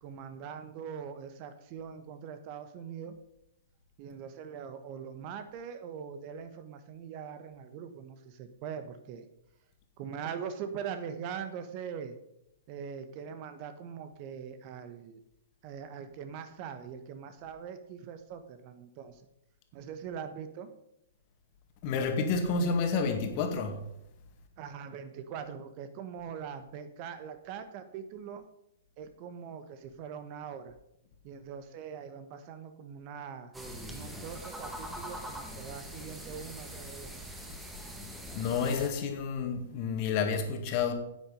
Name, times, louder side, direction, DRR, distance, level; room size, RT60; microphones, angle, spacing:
voice 1, 0.0-3.2 4.0-9.3 10.0-12.2 12.7-15.2 15.6-19.2 19.7-20.7 24.6-28.4 29.0-30.8 31.2-33.5 33.9-37.3, right 7 dB, 40° right, 1.2 m, -42 dB
voice 2, 21.8-23.8 38.3-40.9, left 5 dB, 40° left, 2.1 m, -30 dB
sound 1, 33.5-38.9, equal, 5° right, 1.8 m, -43 dB
10.0 x 9.0 x 5.2 m
figure-of-eight pair, 115°, 0 cm